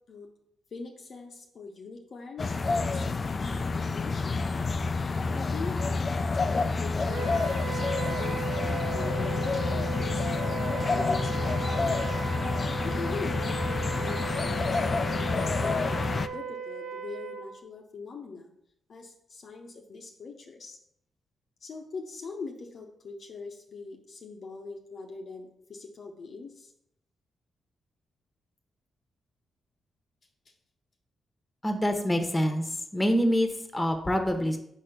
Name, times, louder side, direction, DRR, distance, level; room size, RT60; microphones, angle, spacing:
voice 1, 0.7-4.4 4.9-6.1 6.5-7.8 8.1-12.1 12.8-14.2 14.5-18.5 18.9-20.8 21.6-26.7, left 4 dB, 60° left, 1 dB, 0.8 m, -42 dB
sound 1, 2.4-16.3, left 3 dB, 45° left, 0.4 m, -28 dB
Wind instrument woodwind instrument, 7.1-17.5, right 6 dB, 85° right, 0.9 m, -37 dB
voice 2, 31.6-34.6, equal, 20° left, 5 dB, 1.1 m, -26 dB
4.8 x 4.4 x 5.0 m, 0.75 s
supercardioid pair, 45°, 0 cm